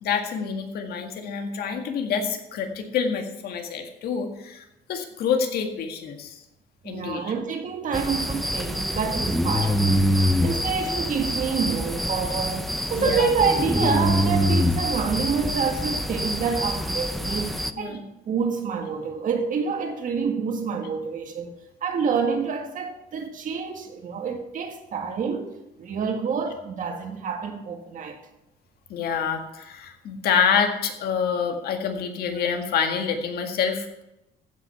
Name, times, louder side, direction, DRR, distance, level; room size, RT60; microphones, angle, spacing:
voice 1, 0.0-6.4 6.8-7.3 12.9-13.3 17.7-18.0 28.9-34.0, left 6 dB, 65° left, 1.8 m, -27 dB
voice 2, 6.8-21.5 21.8-25.5 25.8-28.2, right 6 dB, 50° right, 1.8 m, -27 dB
sound 1, 7.9-17.7, equal, ahead, 0.6 m, -25 dB
15.0 x 5.6 x 5.7 m
cardioid pair, 110°, 17 cm